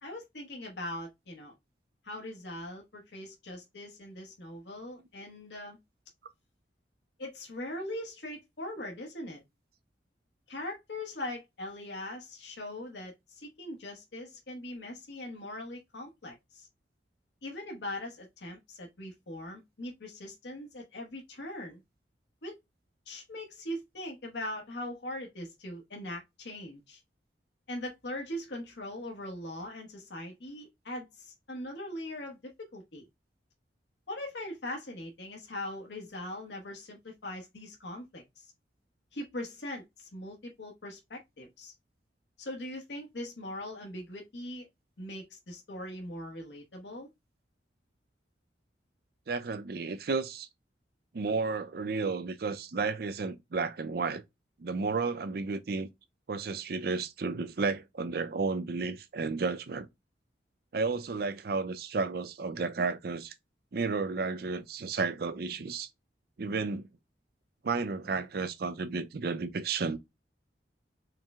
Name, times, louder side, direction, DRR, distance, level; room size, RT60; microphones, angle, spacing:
voice 1, 0.0-1.5 2.0-5.8 7.2-9.4 10.5-16.7 17.4-21.8 22.4-22.6 23.1-27.0 27.7-33.1 34.1-38.5 39.1-41.7 42.4-44.7 45.0-47.1, left 1 dB, 75° left, 1.0 m, -41 dB
voice 2, 49.3-50.5 51.1-54.2 54.6-55.9 56.3-59.9 60.7-63.3 63.7-65.9 66.4-66.9 67.6-70.0, right 4 dB, 55° right, 0.5 m, -32 dB
4.6 x 2.0 x 3.5 m
head